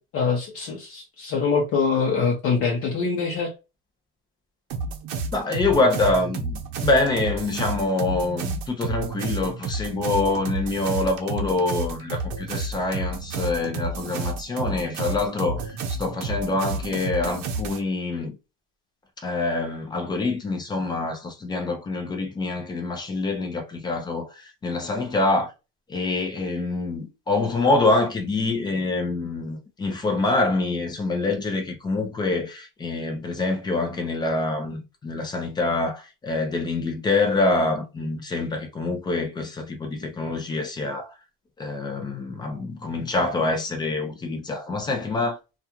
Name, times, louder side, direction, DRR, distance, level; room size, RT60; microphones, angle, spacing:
voice 1, 0.0-3.5, left 5 dB, 45° left, 0.7 m, -24 dB
sound 1, 4.7-17.8, right 3 dB, 70° right, 0.7 m, -31 dB
voice 2, 5.3-18.3 19.2-25.5 25.9-41.1 41.6-45.4, left 3 dB, 15° left, 0.4 m, -25 dB
2.4 x 2.3 x 2.8 m
cardioid pair, 160°, 33 cm